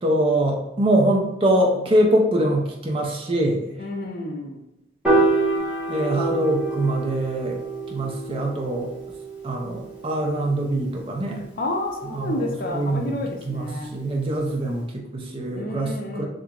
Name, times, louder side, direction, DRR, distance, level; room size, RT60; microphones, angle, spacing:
voice 1, 0.0-3.8 5.9-7.6 7.9-8.9 9.4-11.4 12.1-13.2 13.4-16.2, right 1 dB, 30° right, 0 dB, 0.4 m, -23 dB
voice 2, 3.8-4.6 11.6-13.9 15.5-16.2, left 1 dB, 50° left, 2 dB, 0.4 m, -30 dB
Piano, 5.0-11.4, right 2 dB, 5° right, 0.8 m, -27 dB
2.8 x 2.4 x 2.3 m, 0.90 s
head